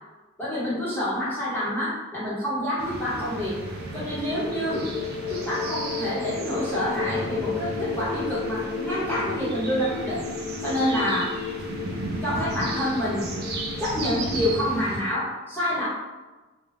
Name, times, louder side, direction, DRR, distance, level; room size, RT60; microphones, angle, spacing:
voice 1, 0.4-3.6 3.9-4.9 5.3-10.3 10.6-11.3 12.2-13.3 13.8-15.9, equal, 10° left, -9 dB, 0.9 m, -27 dB
sound 1, 2.8-15.0, right 2 dB, 45° right, 0.4 m, -35 dB
sound 2, 2.9-14.9, left 5 dB, 55° left, 0.3 m, -34 dB
2.5 x 2.2 x 3.3 m, 1.2 s
head